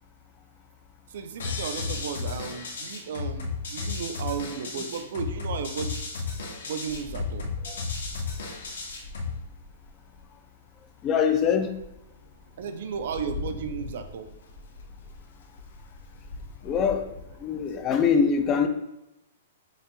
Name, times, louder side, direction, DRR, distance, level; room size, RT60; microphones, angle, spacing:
voice 1, 1.1-6.0 6.7-7.5 12.6-14.3, right 6 dB, 55° right, 8 dB, 0.4 m, -34 dB
sound 1, 1.4-9.4, left 4 dB, 90° left, 0.8 m, -33 dB
Rain, 6.8-10.3 10.9-11.0 11.5-18.1, left 3 dB, 70° left, 0.5 m, -42 dB
voice 2, 11.0-11.7 16.6-17.1 17.4-18.7, left 6 dB, 20° left, 7 dB, 0.3 m, -23 dB
5.8 x 2.9 x 2.2 m, 0.88 s
hypercardioid pair, 170°, 0 cm